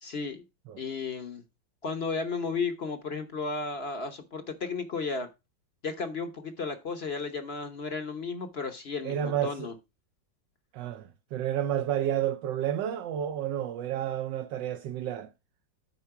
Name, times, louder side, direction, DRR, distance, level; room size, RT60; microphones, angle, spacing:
voice 1, 0.0-0.4 0.8-1.4 1.8-5.3 5.8-9.7, left 4 dB, 45° left, 0.9 m, -34 dB
voice 2, 9.0-9.7 10.7-15.3, right 10 dB, 75° right, 1.3 m, -31 dB
8.5 x 4.4 x 5.6 m
omnidirectional pair, 2.0 m